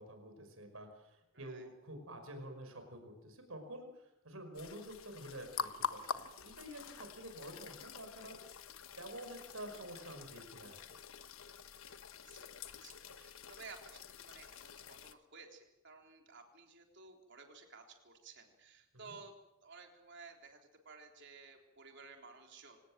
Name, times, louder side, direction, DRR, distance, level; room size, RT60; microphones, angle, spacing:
voice 1, 0.0-8.4 9.0-10.8 18.9-19.1, right 1 dB, 75° right, 6 dB, 5.6 m, -49 dB
voice 2, 1.3-1.7 12.1-19.3 19.6-22.8, right 4 dB, 55° right, 3 dB, 3.8 m, -55 dB
sound 1, 4.5-15.1, left 6 dB, 75° left, 1.2 m, -46 dB
26.0 x 18.5 x 7.6 m, 0.87 s
head